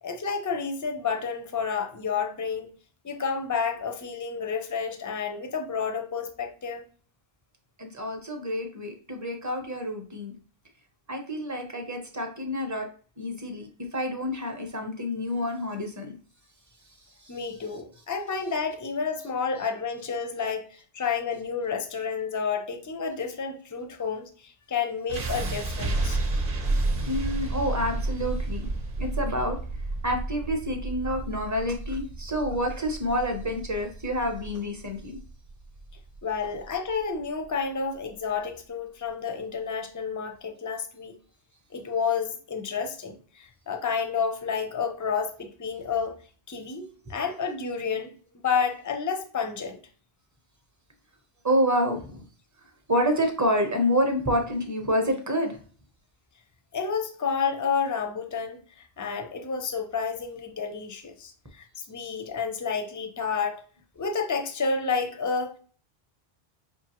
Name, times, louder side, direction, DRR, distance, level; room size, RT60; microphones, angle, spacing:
voice 1, 0.0-2.7 3.0-6.9 17.3-26.2 36.2-41.2 41.7-46.2 46.5-48.1 48.4-49.8 56.7-63.6 64.0-65.6, left 5 dB, 25° left, 0.4 m, -30 dB
voice 2, 7.8-10.3 11.1-12.9 13.2-16.1 17.2-17.3 27.1-28.7 29.0-29.6 30.0-35.2 51.4-52.2 52.9-55.6, equal, 20° right, 0.6 m, -28 dB
sound 1, 25.1-37.1, right 2 dB, 60° right, 0.8 m, -31 dB
5.3 x 2.5 x 2.9 m
omnidirectional pair, 1.1 m